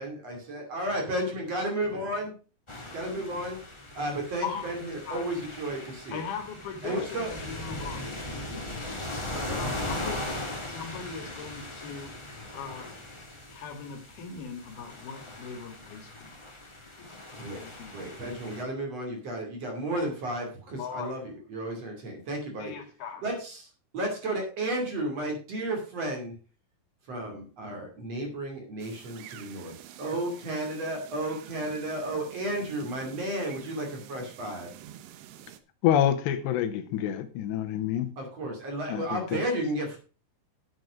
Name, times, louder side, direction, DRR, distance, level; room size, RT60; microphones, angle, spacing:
voice 1, 0.0-2.4 2.9-3.6 3.9-6.2 6.8-7.3 9.3-9.6 17.4-17.6 17.9-22.7 23.2-26.3 27.0-34.7 38.2-40.0, right 1 dB, 40° right, 3.3 m, -33 dB
sound 1, 2.7-18.6, left 1 dB, 45° left, 0.3 m, -39 dB
voice 2, 4.4-4.8 5.1-5.2 6.1-8.2 9.6-10.3 10.6-12.2 12.5-12.9 13.5-16.4 17.0-18.1 20.8-21.2 22.6-23.2, left 6 dB, 70° left, 3.5 m, -40 dB
sound 2, 28.8-35.6, right 11 dB, 85° right, 3.1 m, -48 dB
voice 3, 35.8-38.1 38.9-39.4, left 10 dB, 90° left, 3.2 m, -27 dB
9.5 x 8.0 x 5.0 m
omnidirectional pair, 4.8 m